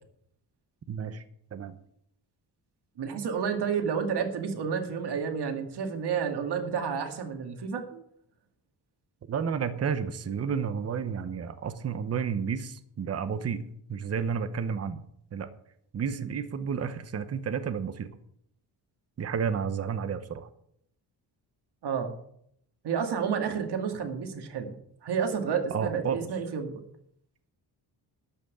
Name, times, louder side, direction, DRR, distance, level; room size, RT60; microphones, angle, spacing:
voice 1, 0.9-1.2 1.5-1.7 9.3-13.6 13.9-15.0 15.3-15.5 15.9-18.1 19.2-20.5 25.7-26.3, right 6 dB, 35° right, 11 dB, 0.9 m, -31 dB
voice 2, 3.0-8.0 16.1-16.3 21.8-22.1 22.8-24.7 25.0-26.8, right 6 dB, 70° right, 4 dB, 2.3 m, -30 dB
12.5 x 6.1 x 8.6 m, 0.71 s
wide cardioid pair, 155°, 41 cm